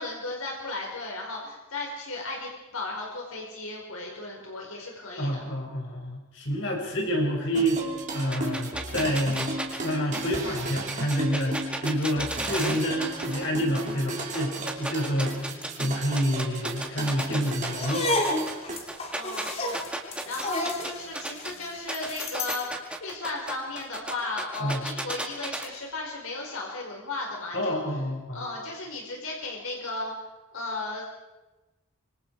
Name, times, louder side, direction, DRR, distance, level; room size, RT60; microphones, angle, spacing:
voice 1, 0.0-5.4 19.1-19.8 20.3-22.7 23.0-27.8 28.3-30.1 30.5-31.1, left 2 dB, 85° left, -1 dB, 4.9 m, -35 dB
voice 2, 5.2-7.9 8.1-9.5 9.8-15.4 15.8-18.1 24.6-24.8 27.5-28.4, equal, 60° left, 0 dB, 6.0 m, -28 dB
sound 1, 7.5-18.8, right 2 dB, 35° right, 3.5 m, -35 dB
sound 2, 8.3-13.5 13.7-15.9 16.1-21.5 21.9-25.7, right 1 dB, 5° right, 2.2 m, -34 dB
sound 3, 17.7-22.7, left 2 dB, 30° left, 2.5 m, -31 dB
26.0 x 25.5 x 4.8 m, 1.1 s
head